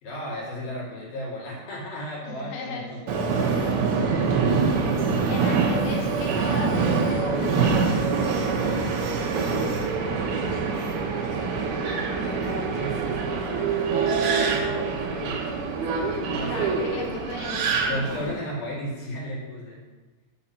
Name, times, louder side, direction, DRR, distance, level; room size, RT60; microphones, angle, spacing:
voice 1, 0.0-3.0 12.3-15.6 16.3-17.0 17.8-19.8, equal, 60° left, -5 dB, 3.2 m, -34 dB
voice 2, 2.2-3.7 5.3-8.2 16.4-17.7, left 3 dB, 75° left, -1 dB, 3.2 m, -36 dB
Subway metro underground, 3.1-18.3, right 5 dB, 70° right, 2.6 m, -25 dB
6.4 x 5.7 x 7.1 m, 1.3 s
omnidirectional pair, 5.2 m